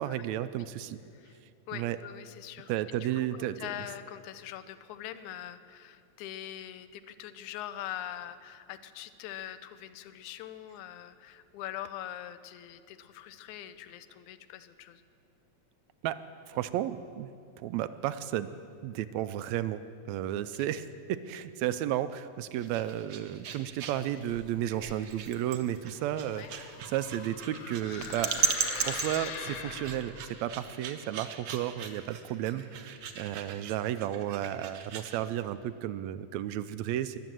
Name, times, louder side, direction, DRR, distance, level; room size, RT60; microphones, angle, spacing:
voice 1, 0.0-1.0 1.7-2.0 2.7-3.7 16.0-16.2 16.5-17.3 17.6-18.5 18.8-19.8 20.1-28.5 28.9-37.2, right 12 dB, 80° right, 13 dB, 1.8 m, -33 dB
voice 2, 1.7-3.0 3.3-15.0 26.4-26.5, left 11 dB, 90° left, 12 dB, 2.1 m, -43 dB
sound 1, 22.5-35.2, right 6 dB, 65° right, 1.3 m, -37 dB
sound 2, 25.8-30.3, left 6 dB, 65° left, 1.3 m, -41 dB
22.0 x 8.1 x 7.6 m, 2.4 s
omnidirectional pair, 3.3 m